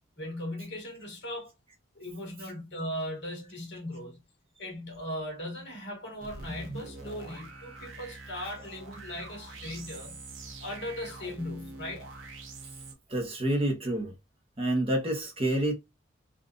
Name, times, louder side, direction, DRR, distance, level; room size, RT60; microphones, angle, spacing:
voice 1, 0.2-1.5 2.0-4.2 4.6-10.2 10.6-12.1, left 1 dB, 65° left, 1.8 m, -38 dB
sound 1, 6.2-12.9, right 2 dB, 90° right, 0.8 m, -44 dB
voice 2, 13.1-14.1 14.6-15.7, right 1 dB, 30° right, 0.8 m, -28 dB
3.7 x 2.4 x 2.4 m
head